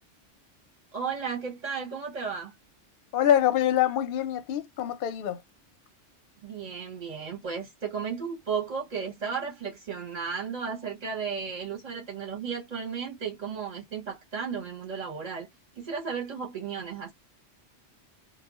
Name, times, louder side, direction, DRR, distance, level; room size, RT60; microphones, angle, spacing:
voice 1, 0.9-2.5 6.4-15.5 15.8-17.1, right 6 dB, 40° right, 0.7 m, -34 dB
voice 2, 3.1-5.4, left 10 dB, 55° left, 0.6 m, -25 dB
2.2 x 2.1 x 3.5 m
omnidirectional pair, 1.3 m